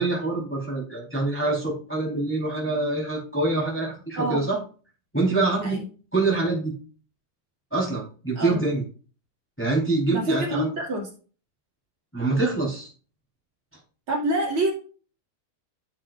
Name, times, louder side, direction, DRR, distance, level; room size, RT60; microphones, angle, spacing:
voice 1, 0.0-4.6 5.1-5.8 6.1-6.7 7.7-8.8 9.6-10.7 12.1-12.9, right 2 dB, 5° left, -4 dB, 3.7 m, -25 dB
voice 2, 10.1-11.1 14.1-14.7, right 1 dB, 40° right, -2 dB, 3.0 m, -26 dB
10.5 x 7.4 x 2.6 m, 0.37 s
omnidirectional pair, 4.1 m